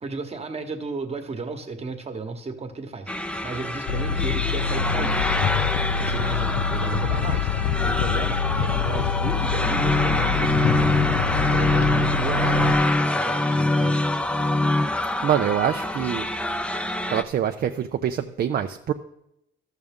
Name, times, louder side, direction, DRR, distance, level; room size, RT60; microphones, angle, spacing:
voice 1, 0.0-5.3 6.0-11.1 11.5-14.0, right 3 dB, 30° right, 6 dB, 1.2 m, -34 dB
sound 1, 3.1-17.2, left 1 dB, 5° left, 0.5 m, -27 dB
sound 2, 3.9-12.7, left 7 dB, 90° left, 0.4 m, -26 dB
sound 3, 9.8-14.9, left 2 dB, 30° left, 0.8 m, -24 dB
voice 2, 15.2-16.3 17.1-18.9, right 9 dB, 50° right, 6 dB, 0.4 m, -25 dB
13.0 x 6.5 x 3.6 m, 0.83 s
cardioid pair, 90°, 20 cm